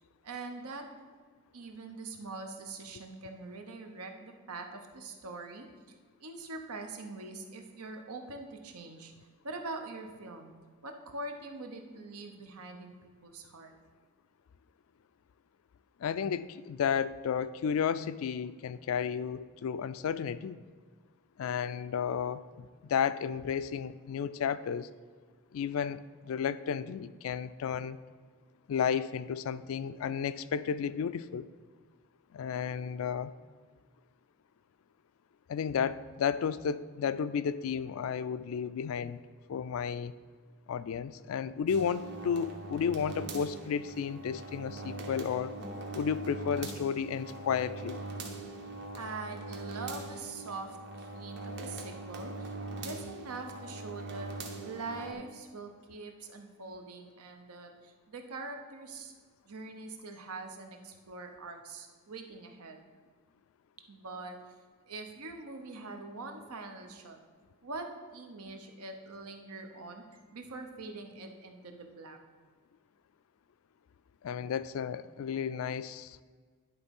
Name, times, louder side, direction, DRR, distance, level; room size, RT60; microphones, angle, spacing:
voice 1, 0.2-0.8 1.5-9.1 9.4-10.5 10.8-13.7 48.9-54.3 54.6-59.1 59.4-62.8 63.9-64.4 64.9-67.2 67.6-70.0 70.3-72.2, right 3 dB, 90° right, 4 dB, 0.9 m, -43 dB
voice 2, 16.0-20.6 21.4-24.9 25.5-28.0 28.7-31.5 32.3-33.3 35.5-39.2 39.5-40.1 40.7-45.6 45.9-48.0 74.2-76.2, left 7 dB, 70° left, 15 dB, 0.3 m, -33 dB
sound 1, 41.7-55.1, right 2 dB, 50° right, 0.9 m, -42 dB
10.5 x 3.6 x 5.3 m, 1.5 s
head